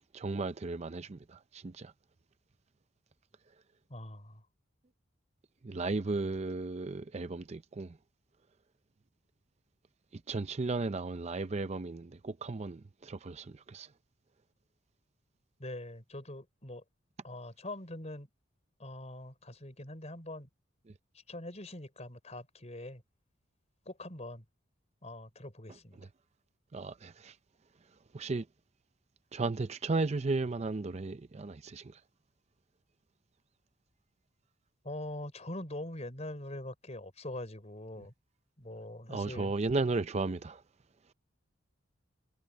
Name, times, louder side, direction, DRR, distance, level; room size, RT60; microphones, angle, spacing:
voice 1, 0.1-1.9 5.6-8.0 10.1-13.9 26.0-26.1 26.7-27.4 28.1-28.5 29.3-32.0 39.1-40.6, right 3 dB, 35° right, 0.5 m, -35 dB
voice 2, 3.9-4.4 15.6-16.8 17.2-18.3 18.8-20.5 21.3-23.0 23.9-24.4 25.0-26.0 34.8-38.1 38.6-39.5, left 1 dB, 35° left, 4.7 m, -43 dB
head